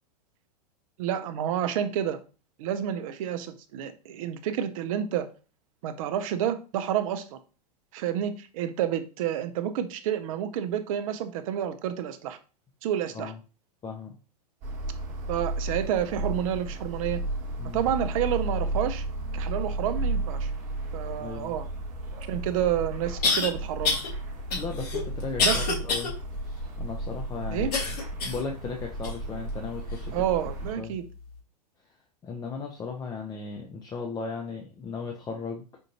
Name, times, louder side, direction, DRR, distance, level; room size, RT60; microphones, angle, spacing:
voice 1, 1.0-2.2 2.6-5.3 5.8-7.4 7.9-12.4 12.8-13.3 15.3-17.2 17.7-19.0 19.3-20.5 20.9-21.7 22.3-24.0 25.4-25.8 27.5-27.7 30.1-31.1, right 10 dB, 55° right, 10 dB, 0.6 m, -29 dB
voice 2, 13.8-14.1 17.6-17.8 21.2-21.6 24.5-26.1 26.8-28.0 28.2-30.2 30.8-31.0 32.2-35.6, left 5 dB, 20° left, 2 dB, 0.5 m, -36 dB
sound 1, 14.6-30.7, right 2 dB, 35° right, 1.2 m, -33 dB
sound 2, 22.2-22.3 23.2-23.5 23.8-24.1 24.5-26.1 26.6-26.7 27.7-28.5 29.0-29.1 29.9-30.0, left 4 dB, 65° left, 1.5 m, -26 dB
5.3 x 2.5 x 2.8 m, 0.35 s
hypercardioid pair, 100°, 21 cm